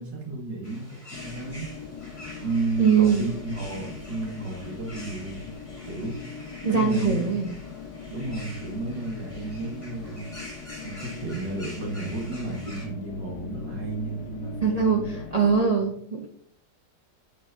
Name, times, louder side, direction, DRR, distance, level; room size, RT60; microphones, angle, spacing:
voice 1, 0.0-1.7 2.4-5.5 5.8-6.2 6.7-7.3 8.1-10.3 10.8-15.2 15.8-15.9, right 2 dB, 80° right, -1 dB, 2.6 m, -32 dB
sound 1, 0.6-12.9, left 1 dB, 15° left, 2.5 m, -46 dB
sound 2, 1.1-15.6, left 5 dB, 75° left, 1.3 m, -41 dB
voice 2, 2.8-3.2 6.6-7.5 14.6-16.3, right 6 dB, 65° right, 1 dB, 0.3 m, -22 dB
8.6 x 6.2 x 2.8 m, 0.65 s
omnidirectional pair, 1.9 m